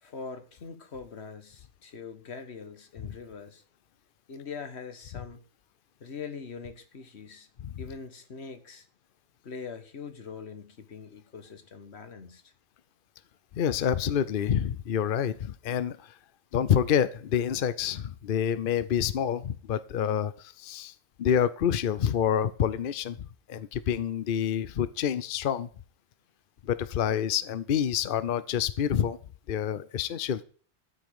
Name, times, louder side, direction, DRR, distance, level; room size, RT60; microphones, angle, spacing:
voice 1, 0.0-3.6 4.3-5.4 6.0-7.5 7.8-8.9 9.4-12.4, left 5 dB, 85° left, 9 dB, 1.6 m, -42 dB
voice 2, 13.5-16.2 16.5-20.9 21.2-25.7 26.6-29.2 29.5-30.4, left 9 dB, 60° left, 15 dB, 0.8 m, -27 dB
12.5 x 5.1 x 8.7 m, 0.43 s
omnidirectional pair, 1.1 m